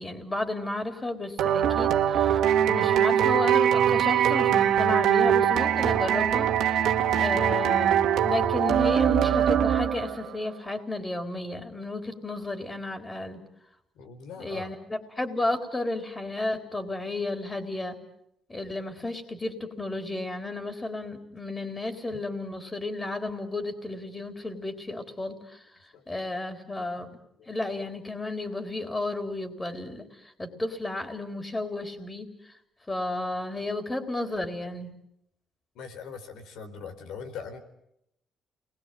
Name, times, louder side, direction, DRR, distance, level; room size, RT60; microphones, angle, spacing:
voice 1, 0.0-13.4 14.4-18.0 18.5-27.2 27.5-32.6 32.9-34.9, left 2 dB, 20° left, 6 dB, 3.7 m, -33 dB
sound 1, 1.4-10.3, right 9 dB, 80° right, 1.7 m, -22 dB
voice 2, 13.9-14.7 22.1-22.2 25.9-26.2 27.3-27.6 35.7-37.6, left 5 dB, 85° left, 8 dB, 4.2 m, -41 dB
29.5 x 22.0 x 9.3 m, 0.80 s
cardioid pair, 90°, 0 cm